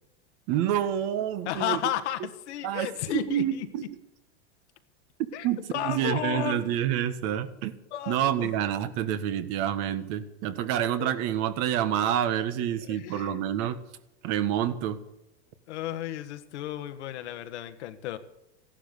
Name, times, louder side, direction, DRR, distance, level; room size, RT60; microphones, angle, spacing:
voice 1, 0.5-1.8 2.6-3.9 5.4-7.7 8.1-13.8 14.2-15.0, right 10 dB, 45° right, 11 dB, 1.5 m, -28 dB
voice 2, 1.4-3.7 5.3-5.5 5.7-6.6 7.9-8.5 10.6-10.7 11.0-11.1 12.9-13.5 15.7-18.2, left 11 dB, 70° left, 9 dB, 1.6 m, -33 dB
15.0 x 11.5 x 6.9 m, 0.89 s
supercardioid pair, 140°, 35 cm